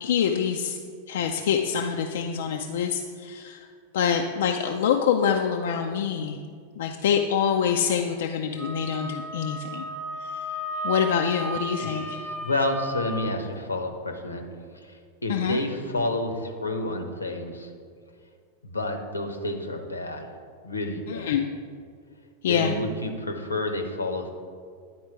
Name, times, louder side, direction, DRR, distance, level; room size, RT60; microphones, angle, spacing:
voice 1, 0.0-0.8 1.1-3.6 3.9-6.4 6.8-9.9 10.2-10.5 10.8-12.2 15.3-15.6 21.1-21.4 22.4-22.8, left 7 dB, 60° left, 3 dB, 0.4 m, -25 dB
Wind instrument woodwind instrument, 8.6-13.3, right 1 dB, 5° right, 0.9 m, -34 dB
voice 2, 11.8-14.4 14.7-17.7 18.6-20.3 20.6-21.4 22.5-24.3, left 1 dB, 80° left, 5 dB, 0.8 m, -30 dB
10.0 x 4.4 x 4.7 m, 2.1 s
figure-of-eight pair, 90°, 0 cm